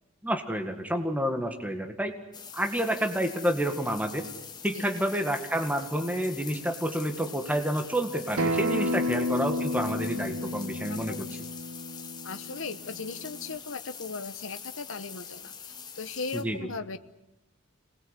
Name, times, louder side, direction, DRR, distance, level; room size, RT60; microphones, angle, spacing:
voice 1, 0.2-2.2 2.5-4.3 4.6-11.3 16.3-16.7, right 1 dB, 5° right, 5 dB, 1.8 m, -29 dB
sound 1, 2.3-16.4, left 7 dB, 20° left, 1.4 m, -44 dB
Acoustic guitar, 8.4-13.6, left 1 dB, 85° right, 1.1 m, -31 dB
voice 2, 10.9-11.4 12.2-17.0, left 4 dB, 60° left, 9 dB, 1.0 m, -38 dB
27.0 x 20.0 x 8.3 m, 0.90 s
head